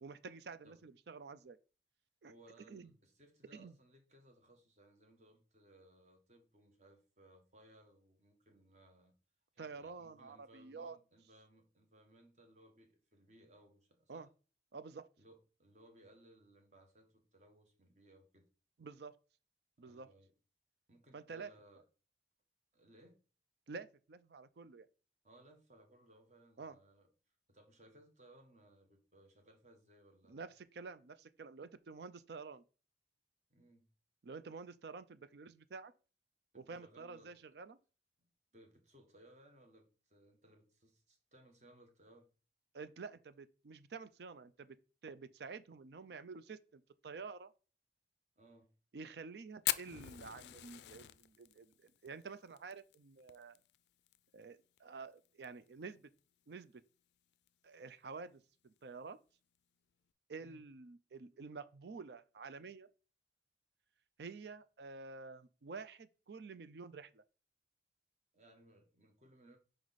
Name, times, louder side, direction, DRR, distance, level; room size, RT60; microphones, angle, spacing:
voice 1, 0.0-1.6 2.2-2.3 2.7-2.9 3.5-3.7 9.6-11.0 14.1-14.3 14.7-15.1 18.8-19.2 19.8-20.1 21.1-21.5 23.7-24.9 26.6-26.8 30.3-32.6 34.2-35.9 36.5-37.8 42.7-44.8 45.0-47.5 48.9-53.6 54.3-56.1 56.5-56.7 57.6-59.2 60.3-62.9 64.2-67.2, right 4 dB, 70° right, 0.5 m, -49 dB
voice 2, 2.3-9.1 9.5-14.3 15.2-18.5 19.8-20.3 20.9-21.8 22.7-23.2 25.2-27.1 27.5-30.4 33.5-33.9 36.5-37.4 38.2-38.3 38.5-42.3 48.4-48.7 60.4-60.6 68.3-69.6, right 1 dB, 40° right, 1.3 m, -64 dB
Fire, 49.6-54.2 54.4-54.5 54.8-54.9 55.2-55.7 56.2-56.3 57.3-57.5, left 14 dB, 80° left, 0.3 m, -40 dB
5.0 x 4.7 x 4.0 m
head